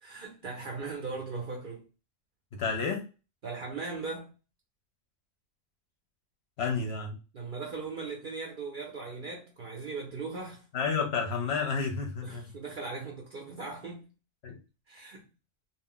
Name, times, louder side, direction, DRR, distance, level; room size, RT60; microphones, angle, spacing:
voice 1, 0.0-1.8 3.4-4.3 7.3-10.6 12.2-14.1 14.9-15.2, right 4 dB, 55° right, 0.6 m, -38 dB
voice 2, 2.5-3.0 6.6-7.2 10.7-12.5 14.4-14.6, left 5 dB, 60° left, 0.7 m, -30 dB
2.5 x 2.0 x 3.6 m
omnidirectional pair, 1.4 m